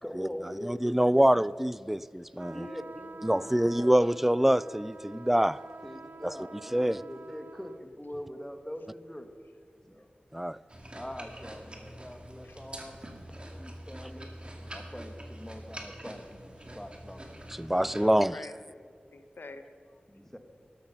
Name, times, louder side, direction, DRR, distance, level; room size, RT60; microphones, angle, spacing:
voice 1, 0.0-1.4 2.5-3.9 5.8-9.3 9.9-10.1 10.9-12.9 13.6-14.3 14.7-17.3 20.1-20.4, equal, 10° left, 7 dB, 1.5 m, -43 dB
voice 2, 0.6-2.7 3.2-5.6 6.7-7.0 10.3-10.6 17.6-18.3, equal, 5° right, 19 dB, 0.3 m, -25 dB
sound 1, 2.4-7.8, right 3 dB, 65° right, 0.5 m, -48 dB
sound 2, 10.7-18.1, right 1 dB, 30° right, 2.1 m, -45 dB
voice 3, 14.2-14.8 18.0-18.8 19.1-20.3, left 3 dB, 80° left, 8 dB, 1.1 m, -49 dB
13.0 x 12.0 x 5.6 m, 2.2 s
wide cardioid pair, 60°, 3 cm